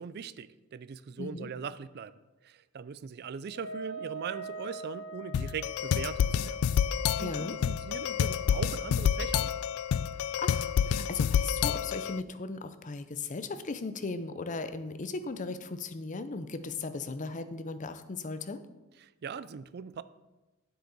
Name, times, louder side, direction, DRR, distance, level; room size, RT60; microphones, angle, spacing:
voice 1, 0.0-2.1 2.4-6.6 7.2-9.5 19.0-20.0, right 6 dB, 50° right, 16 dB, 0.4 m, -40 dB
voice 2, 1.2-1.5 7.2-7.6 10.1-18.6, left 3 dB, 35° left, 11 dB, 0.6 m, -37 dB
Wind instrument woodwind instrument, 3.5-9.1, right 3 dB, 65° left, 1.0 m, -44 dB
sound 1, 5.3-12.2, left 8 dB, 90° left, 0.3 m, -28 dB
9.5 x 7.9 x 4.1 m, 1.1 s
head